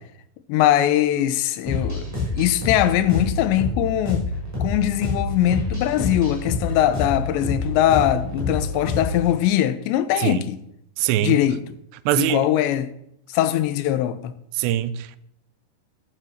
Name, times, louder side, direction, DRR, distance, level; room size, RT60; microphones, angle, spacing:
voice 1, 0.5-2.0 2.4-4.3 4.6-10.6 11.2-11.6 12.2-12.9 13.3-14.3, left 12 dB, 85° left, 3.1 m, -21 dB
sound 1, 1.7-9.3, left 2 dB, 5° right, 5.6 m, -27 dB
voice 2, 11.0-11.4 12.1-12.5 14.6-15.2, right 13 dB, 80° right, 2.8 m, -22 dB
12.5 x 10.0 x 6.5 m
omnidirectional pair, 5.0 m